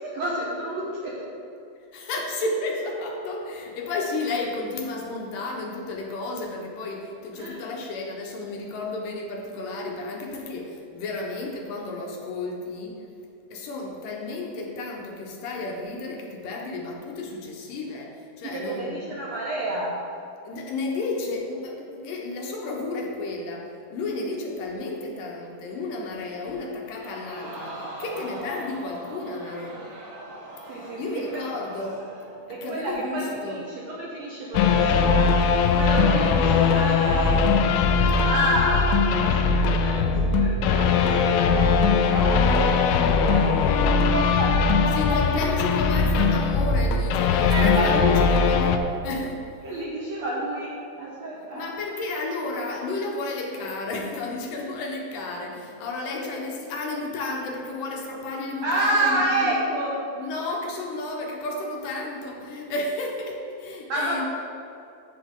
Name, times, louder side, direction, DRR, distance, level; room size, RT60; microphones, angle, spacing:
voice 1, 0.0-1.3 7.4-7.6 18.4-20.0 30.7-31.4 32.5-37.4 38.2-45.2 47.4-48.3 49.6-51.7 58.6-60.1 63.9-64.3, right 1 dB, 65° right, -5 dB, 1.7 m, -29 dB
voice 2, 1.9-13.0 13.5-19.1 20.5-29.9 30.7-32.0 32.5-33.6 44.9-49.6 51.5-59.6 60.2-64.3, left 2 dB, 70° left, 0 dB, 2.5 m, -32 dB
Crowd, 27.0-32.4 32.8-32.9, right 1 dB, 50° right, 2.8 m, -40 dB
sound 1, 34.5-48.8, left 5 dB, 90° left, 2.5 m, -20 dB
14.0 x 5.9 x 3.7 m, 2.7 s
omnidirectional pair, 4.2 m